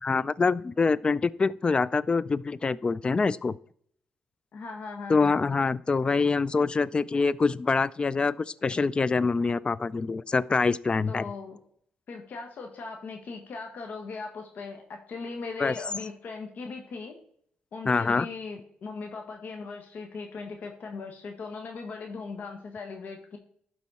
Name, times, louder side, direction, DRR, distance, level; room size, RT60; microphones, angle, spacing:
voice 1, 0.0-3.5 5.1-8.4 8.6-11.3 15.6-15.7 17.9-18.3, left 4 dB, 30° left, 20 dB, 0.4 m, -25 dB
voice 2, 4.5-5.5 11.1-11.6 12.1-17.1 17.7-23.4, left 4 dB, 60° left, 3 dB, 1.4 m, -39 dB
11.5 x 4.2 x 4.2 m, 0.63 s
cardioid pair, 85°, 3 cm